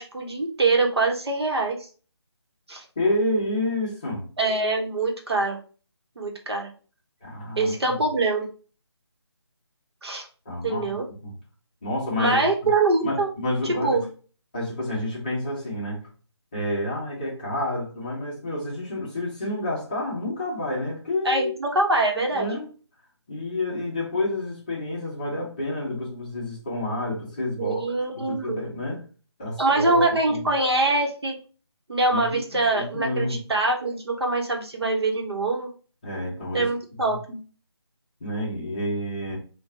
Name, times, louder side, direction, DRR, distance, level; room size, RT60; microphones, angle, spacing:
voice 1, 0.0-1.9 2.7-2.8 4.4-5.6 6.2-6.7 7.6-8.5 10.0-10.3 10.6-11.1 12.2-13.3 13.6-14.1 21.2-22.5 27.6-28.6 29.6-31.3 31.9-35.7 36.5-37.4, right 2 dB, 65° right, 1 dB, 1.2 m, -24 dB
voice 2, 3.0-4.2 7.2-8.0 10.4-10.9 11.2-11.3 11.8-12.5 13.0-14.0 14.5-16.1 16.5-21.5 22.3-22.7 23.3-27.8 28.1-29.0 29.4-30.5 32.1-33.4 36.0-36.7 37.0-37.1 38.2-39.4, left 1 dB, 15° left, -5 dB, 0.9 m, -29 dB
3.8 x 2.5 x 4.3 m, 0.38 s
figure-of-eight pair, 175°, 14 cm